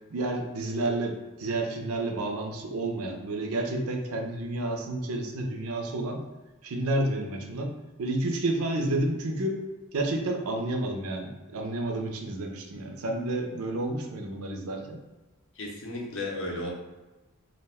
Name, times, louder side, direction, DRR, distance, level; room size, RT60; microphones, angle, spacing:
voice 1, 0.1-6.2 6.6-9.6 9.9-15.0, right 2 dB, 75° right, 2 dB, 0.5 m, -30 dB
voice 2, 15.6-16.7, left 2 dB, 60° left, -1 dB, 0.6 m, -34 dB
2.4 x 2.1 x 3.4 m, 1.1 s
head